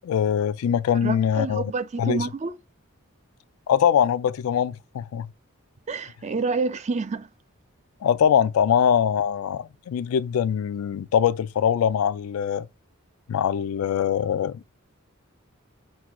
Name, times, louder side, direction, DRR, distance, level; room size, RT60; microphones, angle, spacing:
voice 1, 0.0-1.7 2.0-2.3 3.7-5.3 8.0-12.7 13.3-14.6, left 8 dB, 80° left, 0.3 m, -22 dB
voice 2, 1.0-2.5 5.9-7.3, right 4 dB, 30° right, 0.4 m, -28 dB
6.0 x 2.3 x 3.6 m
head